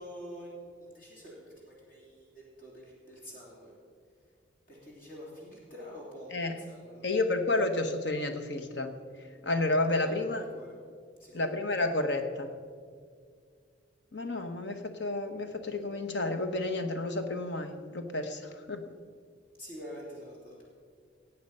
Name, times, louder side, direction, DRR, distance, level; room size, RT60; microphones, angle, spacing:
voice 1, 0.0-3.7 4.7-7.1 9.9-10.7 11.2-11.5 19.6-20.6, equal, 45° left, -4 dB, 3.2 m, -47 dB
voice 2, 7.0-9.0 9.4-10.4 11.3-12.6 14.1-18.8, left 2 dB, 65° left, 7 dB, 1.2 m, -31 dB
17.5 x 8.6 x 5.4 m, 2.1 s
head